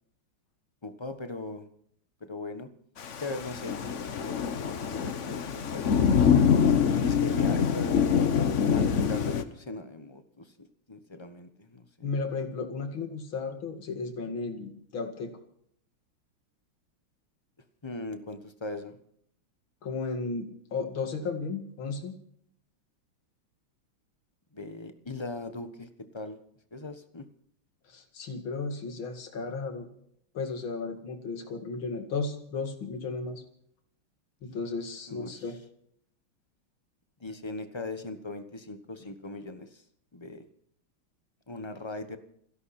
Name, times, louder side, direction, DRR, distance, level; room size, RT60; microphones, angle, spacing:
voice 1, 0.8-1.7 2.2-2.7 3.2-6.1 6.9-12.1 17.8-19.0 24.5-26.4 26.7-27.2 35.1-35.5 37.2-39.8 40.1-40.5 41.5-42.2, left 2 dB, 15° left, 8 dB, 1.0 m, -40 dB
Thunder / Rain, 3.0-9.4, left 7 dB, 50° left, 1.0 m, -25 dB
voice 2, 12.0-15.3 19.8-22.1 27.9-29.9 30.3-33.4 34.4-35.6, left 4 dB, 70° left, 6 dB, 2.8 m, -34 dB
28.5 x 11.5 x 4.4 m, 0.68 s
omnidirectional pair, 2.3 m